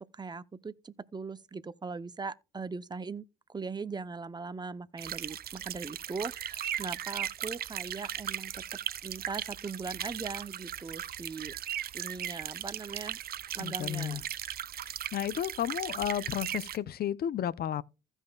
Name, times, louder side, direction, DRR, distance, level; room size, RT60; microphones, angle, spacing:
voice 1, 0.0-8.6 9.0-13.2 13.5-14.3, right 4 dB, 25° right, 0.7 m, -40 dB
sound 1, 5.0-16.8, right 10 dB, 55° right, 0.6 m, -38 dB
voice 2, 13.6-14.2 15.1-17.8, left 10 dB, 60° left, 0.6 m, -32 dB
15.5 x 5.4 x 2.3 m
cardioid pair, 75°, 18 cm